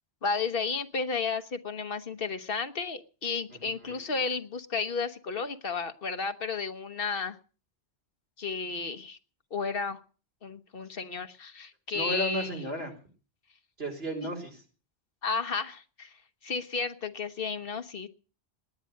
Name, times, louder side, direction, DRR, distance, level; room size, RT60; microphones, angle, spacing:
voice 1, 0.2-7.4 8.4-9.2 9.5-10.0 10.4-12.6 15.2-16.2 16.4-18.1, left 4 dB, 60° left, 9 dB, 1.2 m, -33 dB
voice 2, 3.5-4.0 11.9-12.9 13.8-14.6, equal, 70° right, 2 dB, 4.4 m, -34 dB
19.0 x 10.5 x 6.5 m, 0.39 s
omnidirectional pair, 1.1 m